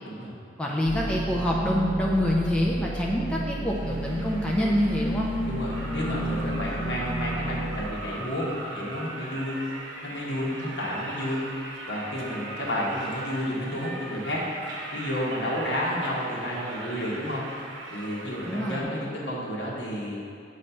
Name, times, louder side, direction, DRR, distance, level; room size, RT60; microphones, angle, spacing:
voice 1, 0.6-5.3 18.5-18.8, left 1 dB, 5° left, -4 dB, 0.4 m, -26 dB
sound 1, 0.9-7.9, right 1 dB, 40° left, 1.1 m, -31 dB
sound 2, 3.7-18.8, right 2 dB, 75° right, 0.9 m, -40 dB
voice 2, 5.5-9.6 10.0-11.4 11.8-17.4 17.9-20.2, equal, 70° left, -5 dB, 1.4 m, -31 dB
7.0 x 3.2 x 5.4 m, 2.4 s
head